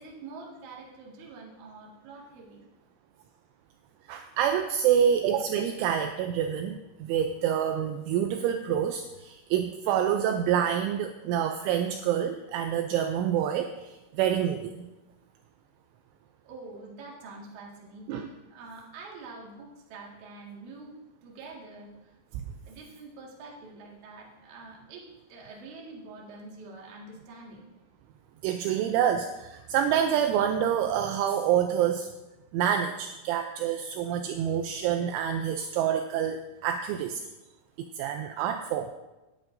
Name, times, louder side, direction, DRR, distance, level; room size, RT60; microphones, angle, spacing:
voice 1, 0.0-2.6 16.4-21.0 21.2-21.9 22.7-27.6, right 3 dB, 55° right, -2 dB, 2.4 m, -46 dB
voice 2, 4.1-14.9 18.1-18.3 22.3-22.4 28.4-32.1 32.5-37.2 37.8-38.9, right 9 dB, 85° right, 6 dB, 2.8 m, -27 dB
18.5 x 9.6 x 2.6 m, 1.1 s
omnidirectional pair, 5.8 m